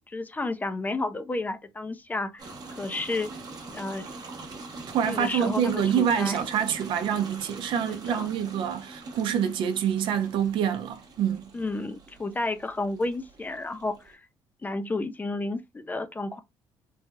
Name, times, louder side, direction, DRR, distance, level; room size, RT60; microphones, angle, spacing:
voice 1, 0.1-3.3 3.7-4.0 5.1-6.5 8.1-8.3 11.5-14.3 14.6-16.4, left 2 dB, 20° left, 0.4 m, -31 dB
sound 1, 2.4-14.1, right 3 dB, 45° right, 0.9 m, -44 dB
voice 2, 4.9-11.5, right 8 dB, 70° right, 0.6 m, -26 dB
3.1 x 2.7 x 2.3 m
cardioid pair, 95°, 9 cm